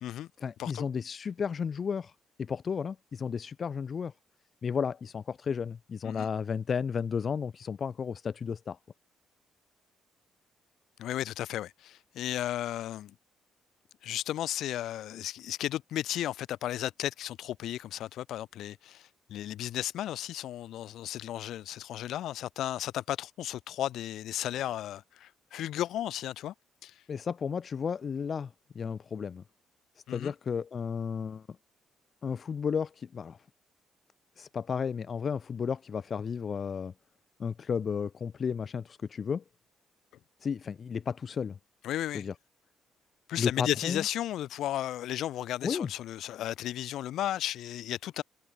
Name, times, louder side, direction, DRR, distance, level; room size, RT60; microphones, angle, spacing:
voice 1, 0.4-2.1 2.4-4.1 4.6-8.8 27.1-29.4 30.1-31.5 32.2-33.4 34.4-36.9 37.4-39.4 40.4-41.6 42.1-42.3 43.4-44.0 45.6-45.9, left 6 dB, 45° left, 0.3 m, -33 dB
voice 2, 11.0-13.1 14.0-26.5 26.8-26.9 30.1-30.3 41.8-42.3 43.3-48.2, left 12 dB, 80° left, 0.8 m, -34 dB
cardioid pair, 90°, 0 cm